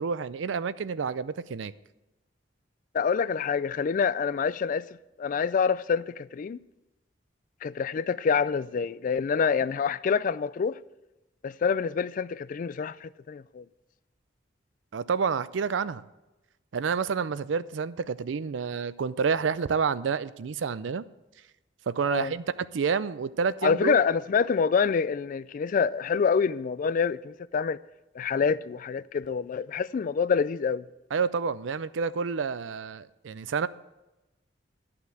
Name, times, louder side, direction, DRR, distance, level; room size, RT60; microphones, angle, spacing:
voice 1, 0.0-1.7 14.9-16.0 16.7-21.0 21.9-24.0 31.1-33.7, right 5 dB, 90° right, 0.4 m, -29 dB
voice 2, 2.9-4.8 5.2-6.6 7.6-10.8 11.4-13.6 22.1-22.3 23.6-27.8 28.2-30.8, left 6 dB, 45° left, 0.3 m, -26 dB
12.0 x 5.8 x 7.7 m
head